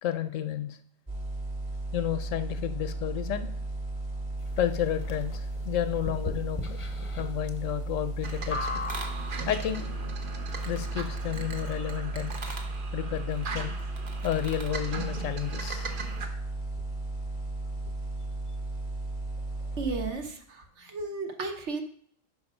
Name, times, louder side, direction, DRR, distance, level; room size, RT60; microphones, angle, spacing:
voice 1, 0.0-0.8 1.9-3.5 4.6-6.8 7.1-8.7 9.5-9.9 10.7-12.6 12.9-13.7 14.2-15.9, left 11 dB, 80° left, 10 dB, 1.0 m, -31 dB
sound 1, 1.1-20.1, right 2 dB, 25° right, 1.6 m, -35 dB
sound 2, 4.4-9.7, left 3 dB, 30° left, 0.7 m, -38 dB
sound 3, 8.2-16.3, right 4 dB, 45° right, 1.0 m, -39 dB
voice 2, 19.8-21.8, right 3 dB, 65° right, 5 dB, 1.3 m, -34 dB
7.1 x 5.1 x 5.4 m, 0.65 s
omnidirectional pair, 1.3 m